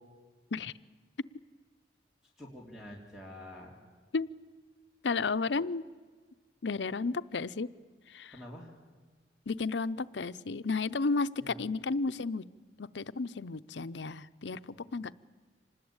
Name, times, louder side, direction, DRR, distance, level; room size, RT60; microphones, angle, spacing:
voice 1, 2.4-3.8 8.3-8.7 11.4-11.7 14.7-14.9, left 1 dB, ahead, -2 dB, 3.1 m, -47 dB
voice 2, 5.0-5.8 6.6-7.7 8.1-8.4 9.5-12.4 12.8-15.1, left 4 dB, 85° left, 14 dB, 0.7 m, -33 dB
26.0 x 20.0 x 8.8 m, 1.5 s
head